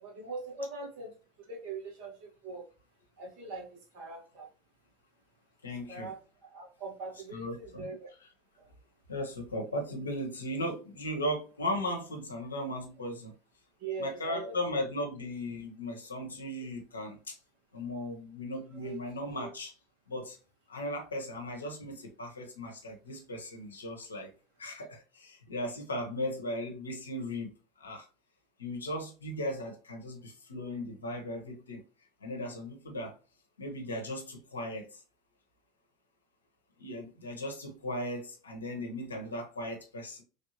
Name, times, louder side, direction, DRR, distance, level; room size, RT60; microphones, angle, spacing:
voice 1, 0.0-1.1 1.4-2.7 3.2-4.5 5.9-6.2 6.5-8.1 8.6-8.7 13.8-14.5 18.7-19.0, right 3 dB, 60° right, 1.4 m, -41 dB
voice 2, 5.6-6.1 7.3-7.9 8.2-8.3 9.1-13.3 14.0-17.4 17.7-19.7 20.1-20.4 20.7-24.3 24.6-27.5 27.8-28.1 28.6-31.8 32.2-33.2 33.6-35.0 36.8-40.2, left 1 dB, 85° left, 0.8 m, -37 dB
3.2 x 2.7 x 2.8 m
figure-of-eight pair, 75°, 0 cm